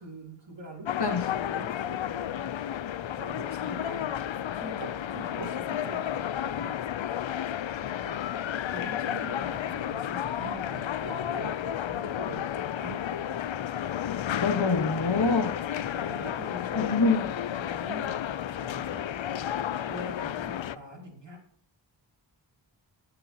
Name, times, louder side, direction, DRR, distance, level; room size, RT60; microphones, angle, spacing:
voice 1, 0.0-2.4 3.1-4.1 4.5-6.8 8.0-8.3 8.7-13.3 15.8-18.1 18.5-19.0 19.8-21.4, right 1 dB, 65° right, -1 dB, 3.1 m, -43 dB
sound 1, 0.9-20.8, left 10 dB, 75° left, 0.5 m, -32 dB
voice 2, 14.4-15.5 16.7-17.3, left 4 dB, 55° left, 7 dB, 1.4 m, -25 dB
20.0 x 6.7 x 2.9 m, 0.65 s
wide cardioid pair, 40°, 47 cm